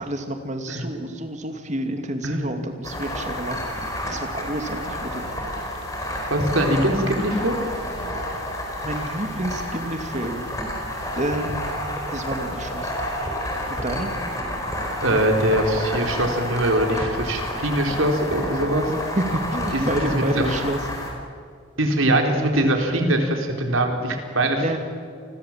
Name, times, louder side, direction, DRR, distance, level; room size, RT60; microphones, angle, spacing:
voice 1, 0.0-5.3 8.8-10.5 11.1-11.7 12.1-12.9 13.7-14.1 19.1-20.8 24.6-24.8, right 1 dB, 35° right, 6 dB, 2.5 m, -29 dB
sound 1, 2.8-21.1, left 1 dB, 15° left, 4.8 m, -30 dB
voice 2, 6.3-7.6 15.0-18.9 19.7-19.8 20.3-20.4 21.8-24.8, right 1 dB, 80° right, 3 dB, 4.1 m, -22 dB
29.5 x 21.0 x 7.5 m, 2.3 s
head